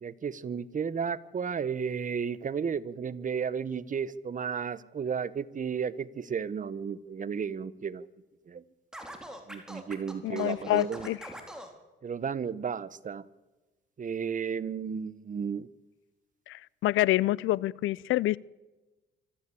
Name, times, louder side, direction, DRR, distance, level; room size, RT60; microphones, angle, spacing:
voice 1, 0.0-8.1 8.5-8.6 9.5-11.1 12.0-13.3 14.0-15.7, right 6 dB, 40° right, 17 dB, 1.1 m, -33 dB
Scratching (performance technique), 8.9-11.7, equal, 5° right, 4.1 m, -43 dB
voice 2, 10.2-11.2 16.5-18.4, left 16 dB, 80° left, 25 dB, 0.6 m, -27 dB
24.5 x 14.0 x 8.5 m, 1.2 s
cardioid pair, 90°, 20 cm